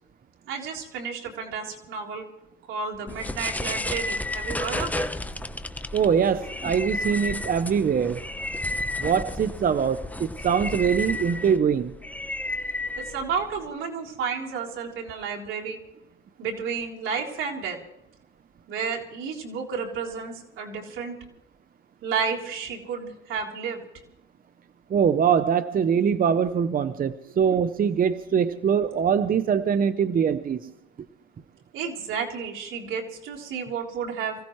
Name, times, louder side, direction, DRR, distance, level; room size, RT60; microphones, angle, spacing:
voice 1, 0.5-2.3 2.7-5.1 13.0-15.8 16.4-17.8 18.7-21.2 22.0-23.8 27.4-27.6 31.7-34.4, right 6 dB, 85° right, -2 dB, 3.7 m, -31 dB
sound 1, 3.1-13.7, left 2 dB, 10° left, 0.9 m, -32 dB
voice 2, 5.9-8.3 9.0-11.9 24.9-30.7, right 7 dB, 45° right, 12 dB, 0.8 m, -23 dB
25.5 x 16.5 x 3.2 m, 0.89 s
cardioid pair, 90°, 20 cm